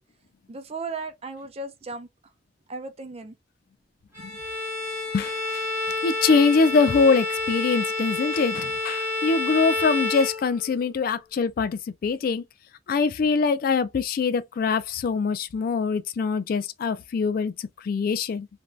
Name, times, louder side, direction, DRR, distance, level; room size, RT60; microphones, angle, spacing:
voice 1, 0.5-2.1 2.7-3.3, right 3 dB, 35° right, 0.5 m, -35 dB
Bowed string instrument, 4.1-10.9, left 3 dB, 15° right, 1.0 m, -29 dB
voice 2, 5.1-5.7 6.0-12.4 12.9-18.5, left 5 dB, 55° left, 0.3 m, -23 dB
2.6 x 2.2 x 3.0 m
head